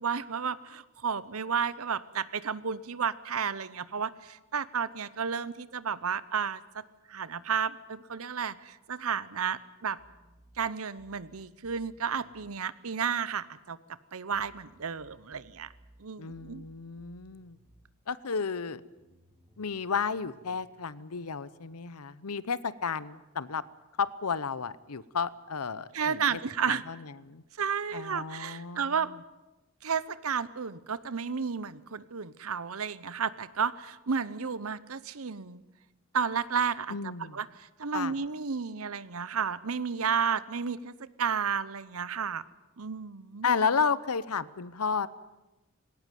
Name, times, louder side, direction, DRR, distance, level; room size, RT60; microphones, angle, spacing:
voice 1, 0.0-6.8 7.1-10.0 10.6-13.8 14.1-15.7 16.0-16.6 25.9-26.8 27.6-29.1 29.8-35.6 36.1-42.4 42.8-43.5, right 6 dB, 70° right, 17 dB, 0.8 m, -32 dB
sound 1, 10.0-12.6 14.3-17.9 19.0-20.6, equal, 20° right, 3.0 m, -60 dB
voice 2, 16.2-17.6 18.1-18.8 19.6-23.6 24.0-26.4 26.7-27.4 27.9-29.0 36.9-37.4 37.9-38.1 43.4-45.1, left 5 dB, 80° left, 18 dB, 0.8 m, -32 dB
19.0 x 18.0 x 9.3 m, 1.1 s
head